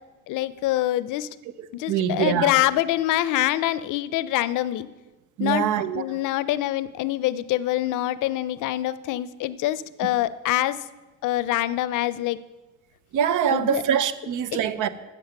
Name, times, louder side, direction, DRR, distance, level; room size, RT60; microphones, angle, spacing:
voice 1, 0.3-1.3 1.7-4.9 5.4-5.6 5.9-10.8 11.2-12.4 13.5-13.8, left 14 dB, 85° left, 0.5 m, -25 dB
voice 2, 1.6-2.6 5.4-6.0 13.1-14.9, right 9 dB, 90° right, 0.7 m, -24 dB
8.4 x 7.6 x 6.6 m
cardioid pair, 90°, 30 cm